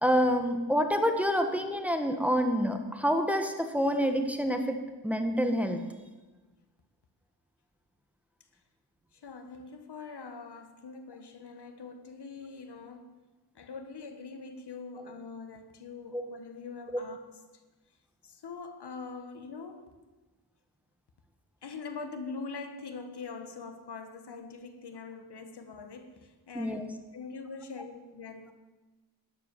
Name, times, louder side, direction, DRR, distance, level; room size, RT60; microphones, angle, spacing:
voice 1, 0.0-4.8 5.0-5.8 16.1-16.2 26.5-26.8, equal, 5° right, 5 dB, 1.5 m, -27 dB
voice 2, 9.1-13.1 13.5-17.3 18.2-19.9 21.6-26.8 27.1-28.5, left 4 dB, 70° left, 8 dB, 1.5 m, -43 dB
12.5 x 10.0 x 7.0 m, 1.2 s
wide cardioid pair, 85°, 41 cm